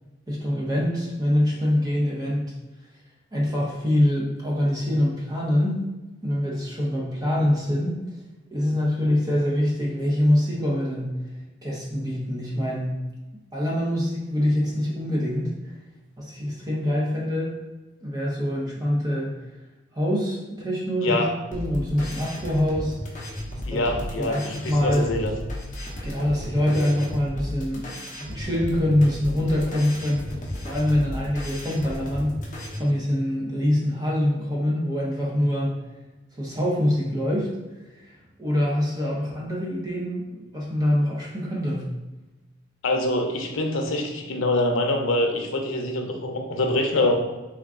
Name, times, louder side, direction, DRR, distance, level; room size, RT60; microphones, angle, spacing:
voice 1, 0.3-2.5 3.3-5.8 6.2-8.0 8.5-11.2 11.6-13.0 13.5-15.5 16.2-17.5 18.0-19.4 19.9-21.3 21.5-23.2 23.5-23.8 24.2-25.1 26.0-28.0 28.3-30.3 30.6-35.8 36.3-37.5 37.9-38.1 38.4-41.9, left 1 dB, 20° right, -4 dB, 0.7 m, -24 dB
sound 1, 21.5-32.8, left 1 dB, 40° left, 0.7 m, -34 dB
voice 2, 23.6-25.3 42.8-47.1, left 2 dB, 85° left, 3 dB, 0.6 m, -24 dB
3.5 x 2.3 x 3.6 m, 1.1 s
head